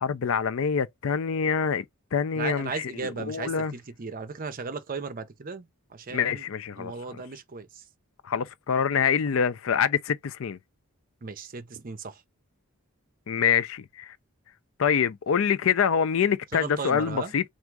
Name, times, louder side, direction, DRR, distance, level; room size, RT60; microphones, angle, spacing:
voice 1, 0.0-1.8 2.1-2.7 3.3-3.7 6.1-6.9 8.2-10.6 13.3-14.1 14.8-17.4, left 7 dB, 65° left, 0.4 m, -25 dB
voice 2, 2.3-6.5 6.8-7.9 11.2-12.2 16.5-17.3, right 4 dB, 40° right, 0.6 m, -36 dB
3.5 x 2.5 x 4.5 m
head